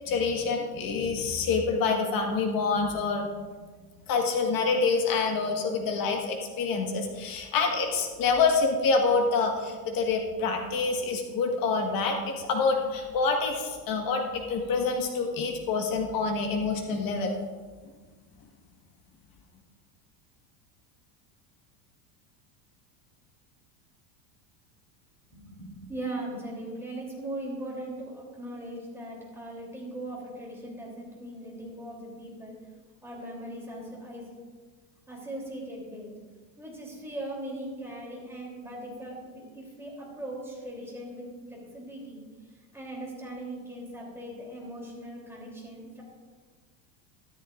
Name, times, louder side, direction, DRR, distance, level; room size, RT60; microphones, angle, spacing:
voice 1, 0.1-3.3 4.1-17.3, left 4 dB, 45° left, 2 dB, 1.7 m, -27 dB
voice 2, 25.3-32.6 33.0-34.3 35.1-36.1 36.6-42.3 42.7-46.0, right 1 dB, 5° right, -3 dB, 3.3 m, -39 dB
13.5 x 12.5 x 2.6 m, 1.4 s
supercardioid pair, 140°, 49 cm